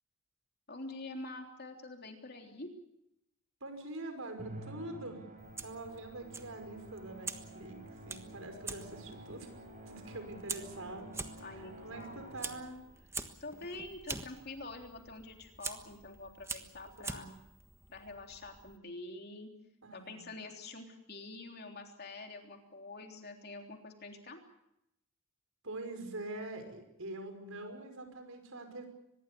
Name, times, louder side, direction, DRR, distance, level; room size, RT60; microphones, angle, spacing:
voice 1, 0.7-2.7 11.4-12.3 13.4-17.3 17.9-19.5 19.9-24.4, left 2 dB, 45° left, 3 dB, 3.5 m, -46 dB
voice 2, 3.6-5.2 5.6-9.5 9.9-11.1 11.4-12.8 17.0-17.3 19.8-20.2 25.6-28.9, right 2 dB, 75° right, 6 dB, 5.7 m, -45 dB
Musical instrument, 4.4-12.9, right 1 dB, 40° right, 4.7 m, -50 dB
Fire, 5.4-18.8, right 3 dB, 15° right, 1.4 m, -46 dB
24.5 x 21.0 x 6.9 m, 0.82 s
head